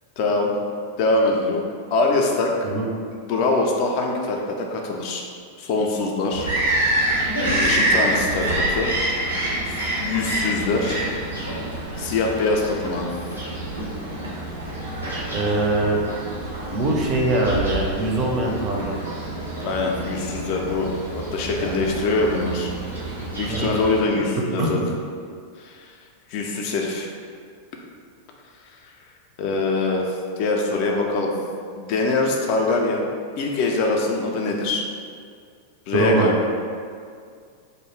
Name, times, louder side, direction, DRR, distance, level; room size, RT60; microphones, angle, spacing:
voice 1, 0.2-0.5 1.0-1.6 1.9-2.5 3.1-5.2 5.6-6.5 7.6-8.9 9.7-11.0 12.0-13.1 19.6-22.7 23.4-24.8 25.6-25.9 26.3-27.1 29.4-31.3 31.8-33.0 33.4-34.8 35.9-36.3, left 3 dB, 45° left, 0 dB, 0.3 m, -23 dB
Bird vocalization bird call bird song, 6.3-24.0, right 1 dB, 90° right, 0.5 m, -27 dB
voice 2, 15.3-16.0 16.7-19.0 21.5-21.8 23.5-23.7 24.6-24.8 35.9-36.3, right 2 dB, 35° right, -1 dB, 0.4 m, -22 dB
2.3 x 2.0 x 3.1 m, 2.2 s
figure-of-eight pair, 90°, 0 cm